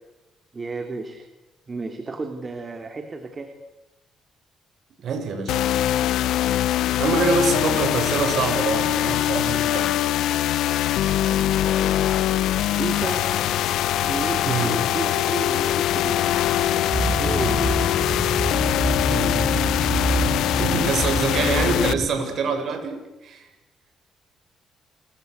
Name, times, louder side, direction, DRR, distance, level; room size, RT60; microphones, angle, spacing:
voice 1, 0.5-1.3 1.7-3.5 7.6-8.0 12.8-13.4 14.0-16.3 17.2-17.6 21.3-21.4, right 3 dB, 30° right, 6 dB, 3.4 m, -32 dB
voice 2, 5.0-5.6 7.0-9.9 11.0-11.2 14.4-14.8 17.4-17.7 19.1-19.6 20.6-23.5, right 4 dB, 65° right, 6 dB, 7.7 m, -25 dB
sound 1, 5.5-21.9, left 12 dB, 85° left, 1.0 m, -22 dB
sound 2, 16.9-22.1, right 2 dB, 15° right, 1.9 m, -27 dB
28.5 x 24.0 x 8.2 m, 1.0 s
cardioid pair, 90°, 0 cm